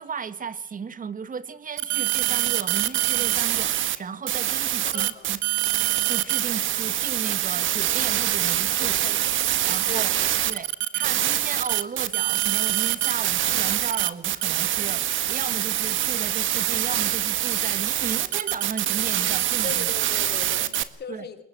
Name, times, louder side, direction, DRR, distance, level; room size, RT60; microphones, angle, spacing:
voice 1, 0.0-5.4 6.1-9.0 9.7-10.1 10.5-10.7 10.9-19.9 21.1-21.3, right 6 dB, 45° right, 13 dB, 1.9 m, -35 dB
sound 1, 1.8-4.0 4.3-20.8, right 13 dB, 75° right, 1.6 m, -24 dB
voice 2, 4.8-5.3 8.8-10.3 19.6-21.4, left 6 dB, 55° left, 11 dB, 3.4 m, -39 dB
22.5 x 20.5 x 7.7 m, 0.76 s
cardioid pair, 90°, 20 cm